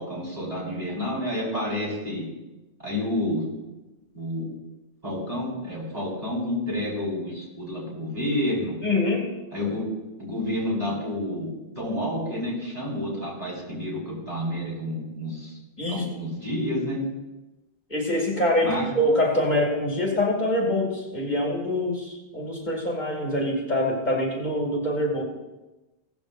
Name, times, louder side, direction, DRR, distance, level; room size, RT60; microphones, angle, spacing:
voice 1, 0.0-2.3 2.8-3.5 4.1-4.5 5.0-8.8 9.5-9.9 10.2-15.6 15.9-17.0 18.6-18.9, left 1 dB, 40° right, -6 dB, 5.2 m, -29 dB
voice 2, 8.8-9.3 15.8-16.0 17.9-25.2, left 1 dB, 40° left, -2 dB, 2.6 m, -25 dB
17.0 x 14.0 x 2.6 m, 1.1 s
omnidirectional pair, 1.1 m